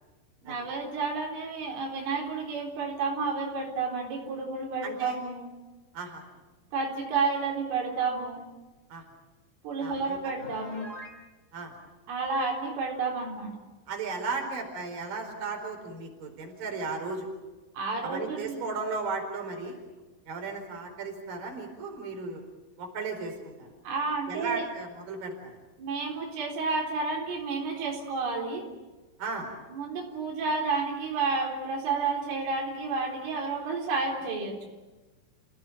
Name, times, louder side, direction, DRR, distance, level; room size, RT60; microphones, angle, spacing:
voice 1, 0.4-5.5 6.7-8.4 9.6-10.9 12.1-13.6 17.7-18.6 23.8-24.7 25.8-28.7 29.7-34.7, right 4 dB, 85° right, 0 dB, 6.6 m, -31 dB
voice 2, 4.8-5.2 5.9-6.2 8.9-9.0 9.8-10.2 11.5-11.7 13.9-17.3 18.0-19.8 20.3-22.4 22.8-23.7 24.3-25.5 29.2-29.5, right 4 dB, 45° right, 3 dB, 5.9 m, -35 dB
Piano, 10.4-11.2, left 1 dB, 20° left, 2.8 m, -43 dB
29.5 x 17.5 x 9.2 m, 1.2 s
omnidirectional pair, 5.6 m